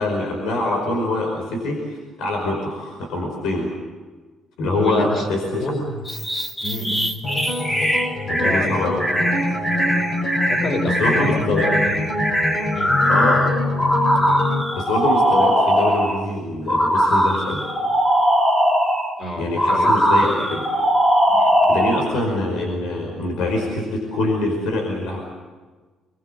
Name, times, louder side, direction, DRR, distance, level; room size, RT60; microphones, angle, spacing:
voice 1, 0.0-3.7 4.6-5.6 8.3-9.3 11.0-11.7 13.0-13.4 14.7-17.7 19.4-20.7 21.7-25.2, left 2 dB, 90° left, 1 dB, 5.2 m, -24 dB
voice 2, 4.7-5.3 5.6-6.0 6.6-7.1 8.3-9.0 9.6-9.8 10.5-12.0 12.7-13.0 19.2-20.4 21.3-21.7, left 1 dB, 35° left, 3 dB, 4.8 m, -28 dB
sound 1, 6.1-16.2 16.7-19.1 19.6-22.1, equal, 15° left, 2.5 m, -20 dB
sound 2, 7.2-14.6, left 2 dB, 55° left, 4.9 m, -25 dB
27.0 x 22.0 x 8.2 m, 1.4 s
cardioid pair, 150°, 0 cm